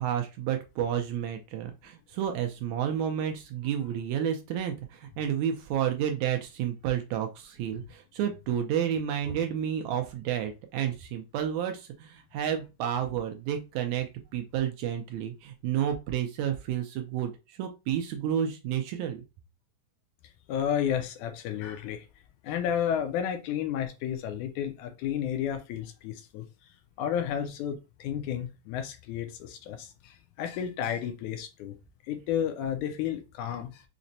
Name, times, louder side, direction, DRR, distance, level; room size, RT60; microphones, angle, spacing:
voice 1, 0.0-19.2, right 9 dB, 80° right, 1.8 m, -31 dB
voice 2, 20.5-22.1 22.4-26.5 27.0-31.8 32.1-33.8, left 9 dB, 80° left, 1.9 m, -32 dB
5.8 x 2.1 x 2.6 m
omnidirectional pair, 3.5 m